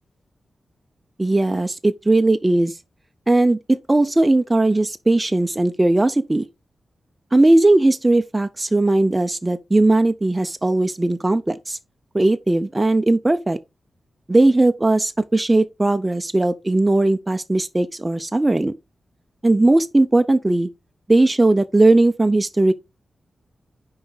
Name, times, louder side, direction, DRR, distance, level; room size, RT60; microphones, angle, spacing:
voice 1, 1.2-2.7 3.3-6.4 7.3-11.8 12.1-13.6 14.3-18.7 19.4-20.7 21.1-22.7, right 2 dB, 15° right, 0.4 m, -18 dB
6.1 x 4.8 x 3.7 m
wide cardioid pair, 140°, 0 cm